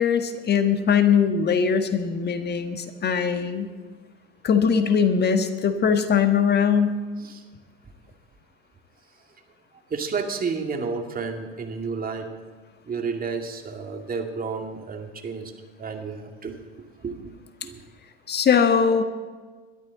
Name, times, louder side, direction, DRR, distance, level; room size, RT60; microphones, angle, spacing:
voice 1, 0.0-3.7 4.4-7.0 18.3-19.0, left 6 dB, 35° left, 7 dB, 1.6 m, -21 dB
voice 2, 9.9-12.3 12.8-15.5 15.8-16.5 17.0-17.3 17.6-17.8, right 5 dB, 30° right, 3 dB, 2.4 m, -31 dB
22.0 x 12.5 x 4.0 m, 1.4 s
hypercardioid pair, 75°, 30 cm